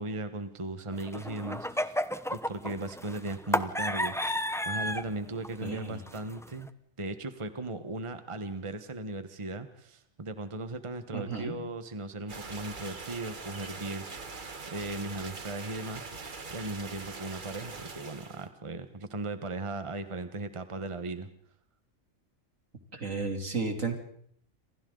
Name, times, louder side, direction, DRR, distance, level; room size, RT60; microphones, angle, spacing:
voice 1, 0.0-2.0 2.3-6.7 7.0-14.0 14.7-21.3, right 2 dB, 25° right, 9 dB, 1.3 m, -37 dB
sound 1, 0.9-5.1 5.4-5.8 6.1-6.7, equal, 5° left, 0.6 m, -32 dB
voice 2, 5.6-6.0 11.1-11.6 22.9-23.9, right 4 dB, 75° right, 4 dB, 3.5 m, -33 dB
sound 2, 12.3-18.5, right 4 dB, 40° right, 1.5 m, -42 dB
29.0 x 26.5 x 4.0 m, 0.63 s
omnidirectional pair, 1.4 m